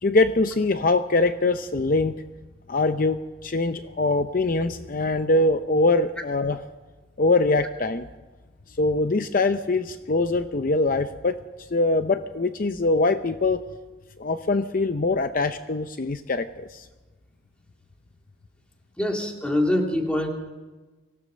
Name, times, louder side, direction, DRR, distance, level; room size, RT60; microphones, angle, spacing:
voice 1, 0.0-2.1 2.7-6.6 7.2-8.1 8.8-11.4 11.7-13.6 14.2-16.9, left 2 dB, 50° left, 9 dB, 0.7 m, -23 dB
voice 2, 19.0-20.3, left 1 dB, 5° left, 1 dB, 2.7 m, -24 dB
24.5 x 17.0 x 6.4 m, 1.2 s
head